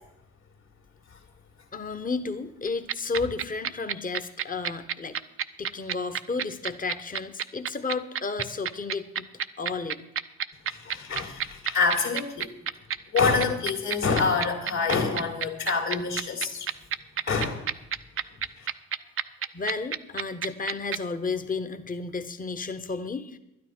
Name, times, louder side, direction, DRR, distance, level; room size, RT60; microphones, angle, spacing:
voice 1, 1.7-5.2 5.6-9.3 9.6-10.0 19.5-23.4, left 4 dB, 25° left, 9 dB, 1.1 m, -32 dB
sound 1, 2.7-21.0, right 9 dB, 40° right, 0.6 m, -29 dB
voice 2, 10.7-12.5 13.1-16.7 17.3-17.7 18.6-18.7, left 4 dB, 55° left, -3 dB, 2.3 m, -26 dB
12.0 x 9.7 x 6.1 m, 0.92 s
hypercardioid pair, 50°, 33 cm